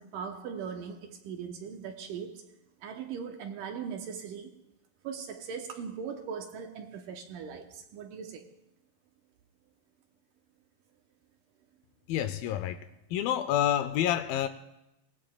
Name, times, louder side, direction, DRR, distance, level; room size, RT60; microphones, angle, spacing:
voice 1, 0.0-2.4 2.8-4.6 5.0-8.5, right 6 dB, 75° right, 2.1 m, -39 dB
voice 2, 12.1-12.8 13.1-14.5, left 11 dB, 80° left, 2.1 m, -28 dB
23.0 x 18.0 x 2.3 m
omnidirectional pair, 4.6 m